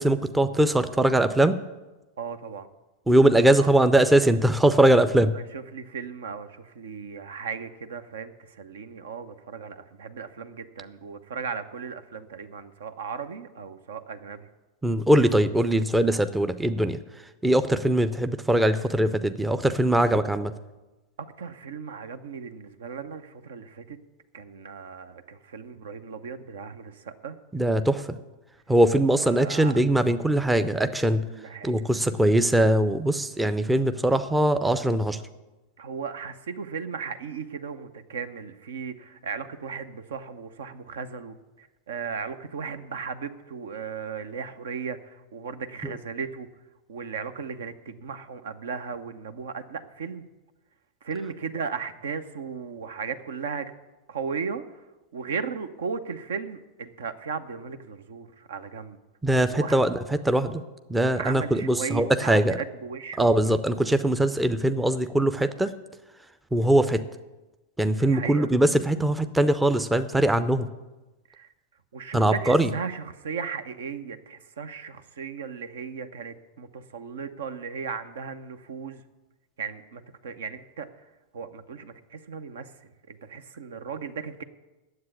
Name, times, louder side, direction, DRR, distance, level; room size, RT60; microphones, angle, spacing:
voice 1, 0.0-1.6 3.1-5.3 14.8-17.0 17.4-20.5 27.5-28.2 28.7-31.2 31.6-35.2 45.8-45.9 59.2-60.6 60.9-62.6 63.2-65.7 66.5-67.0 67.8-70.7 72.1-72.7, right 1 dB, 5° right, 10 dB, 0.6 m, -21 dB
voice 2, 2.2-2.7 3.5-3.7 5.3-14.5 21.2-24.0 24.3-27.4 29.2-29.8 31.3-31.8 32.0-32.1 35.8-46.5 46.9-50.2 51.0-53.7 54.1-54.6 55.1-59.0 59.5-59.8 61.1-63.9 68.0-68.5 71.3-71.5 71.9-79.0 79.6-80.9 81.3-82.7 83.1-84.4, right 6 dB, 60° right, 11 dB, 0.8 m, -36 dB
9.6 x 7.9 x 9.6 m, 1.1 s
figure-of-eight pair, 90°, 0 cm